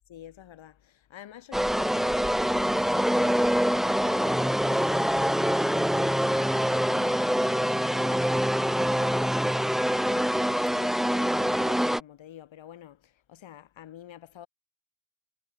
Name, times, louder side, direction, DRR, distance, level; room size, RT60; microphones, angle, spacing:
voice 1, 0.1-14.5, left 11 dB, 75° left, 1.0 m, -49 dB
sound 1, 1.5-12.0, equal, ahead, 0.3 m, -25 dB
cardioid pair, 40°, 47 cm